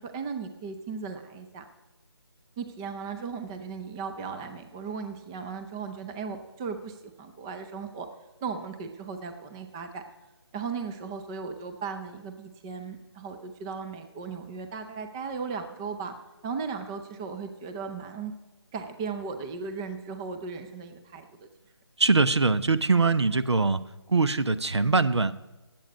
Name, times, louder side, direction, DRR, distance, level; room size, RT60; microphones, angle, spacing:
voice 1, 0.0-1.7 2.6-8.1 8.4-10.0 10.5-16.1 16.4-18.3 18.7-21.3, right 5 dB, 10° right, 7 dB, 0.4 m, -36 dB
voice 2, 22.0-23.8 24.1-25.4, right 3 dB, 80° right, 14 dB, 0.8 m, -22 dB
17.5 x 8.0 x 5.1 m, 1.1 s
figure-of-eight pair, 155°, 14 cm